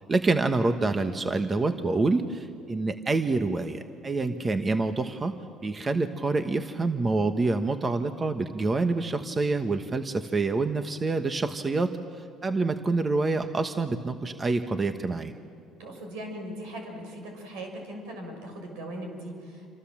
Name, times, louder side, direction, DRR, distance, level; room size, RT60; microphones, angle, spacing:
voice 1, 0.1-5.4 5.6-15.3, right 3 dB, 30° right, 8 dB, 1.3 m, -27 dB
voice 2, 15.8-19.7, right 1 dB, 85° right, 3 dB, 6.2 m, -39 dB
28.0 x 26.5 x 7.5 m, 2.4 s
supercardioid pair, 80°, 0 cm